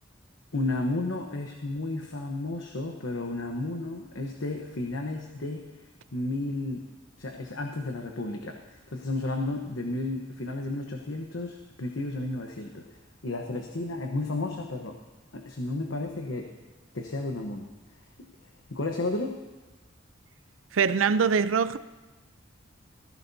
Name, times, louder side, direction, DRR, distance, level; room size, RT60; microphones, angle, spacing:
voice 1, 0.5-5.7 6.1-6.8 7.2-8.6 8.9-12.8 13.2-15.0 15.3-16.5 16.9-17.7 18.7-19.3, left 2 dB, 75° left, 1.1 m, -32 dB
voice 2, 20.7-21.8, right 6 dB, 80° right, 0.5 m, -23 dB
18.0 x 15.5 x 2.8 m
head